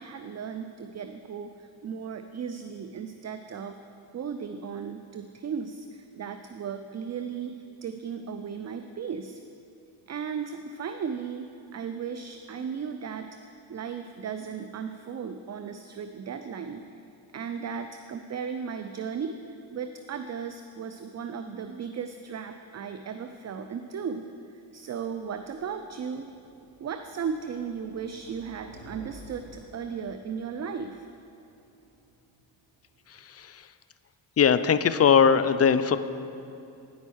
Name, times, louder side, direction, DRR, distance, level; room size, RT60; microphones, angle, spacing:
voice 1, 0.0-3.8 4.1-9.4 10.1-16.8 17.3-19.4 19.7-24.2 24.7-26.3 26.8-31.1, right 6 dB, 35° right, 8 dB, 0.4 m, -36 dB
sound 1, 24.6-33.3, right 1 dB, 90° right, 1.0 m, -53 dB
voice 2, 33.1-33.7 34.4-36.0, left 7 dB, 35° left, 12 dB, 0.4 m, -21 dB
9.3 x 5.5 x 6.2 m, 2.7 s
supercardioid pair, 50°, 49 cm